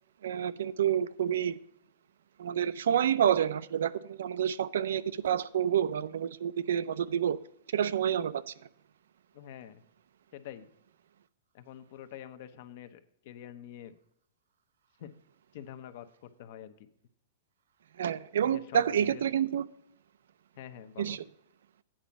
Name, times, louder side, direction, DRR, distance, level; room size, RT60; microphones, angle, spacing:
voice 1, 0.2-1.6 2.4-7.4 7.7-8.4 18.0-19.6 21.0-21.2, right 9 dB, 80° right, 0.5 m, -28 dB
voice 2, 9.3-9.8 10.3-10.7 11.5-13.0 13.2-13.9 15.0-15.1 15.5-16.7 18.4-19.2 20.6-21.2, left 10 dB, 45° left, 0.7 m, -46 dB
8.8 x 5.1 x 6.8 m
supercardioid pair, 170°, 0 cm